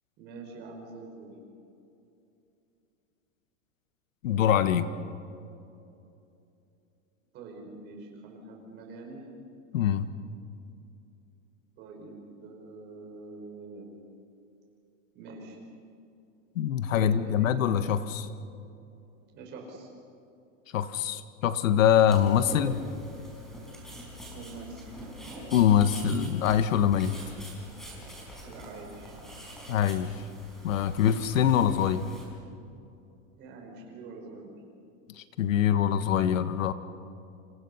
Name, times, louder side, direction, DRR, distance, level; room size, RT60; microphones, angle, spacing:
voice 1, 0.2-1.3 7.3-9.2 11.8-13.9 15.2-15.6 16.9-17.5 19.3-19.9 24.3-24.8 28.4-29.2 33.4-34.6, right 3 dB, 25° right, 1 dB, 5.5 m, -44 dB
voice 2, 4.2-4.9 9.7-10.1 16.5-18.3 20.7-22.8 25.5-27.2 29.7-30.1 30.6-32.0 35.2-36.7, left 9 dB, 80° left, 11 dB, 1.6 m, -24 dB
sound 1, 22.1-32.3, equal, ahead, 4.7 m, -44 dB
29.5 x 28.0 x 5.7 m, 2.7 s
supercardioid pair, 175°, 40 cm